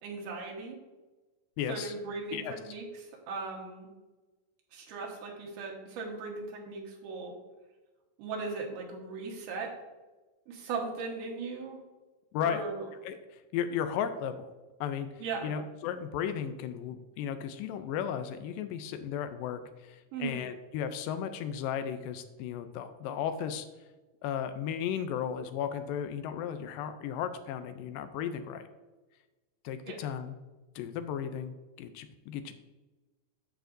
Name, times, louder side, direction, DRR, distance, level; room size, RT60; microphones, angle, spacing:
voice 1, 0.0-0.8 1.7-3.9 4.7-7.3 8.2-9.8 10.5-11.8 12.4-12.9 15.2-15.5 20.1-20.4 29.9-30.0, right 4 dB, 80° right, -1 dB, 3.3 m, -38 dB
voice 2, 1.6-1.9 2.3-2.7 12.3-12.6 13.0-14.5 14.8-15.1 15.4-23.7 24.2-28.7 29.6-30.4 30.8-32.5, left 8 dB, 80° left, 9 dB, 2.1 m, -35 dB
14.5 x 4.9 x 2.6 m, 1.2 s
omnidirectional pair, 4.4 m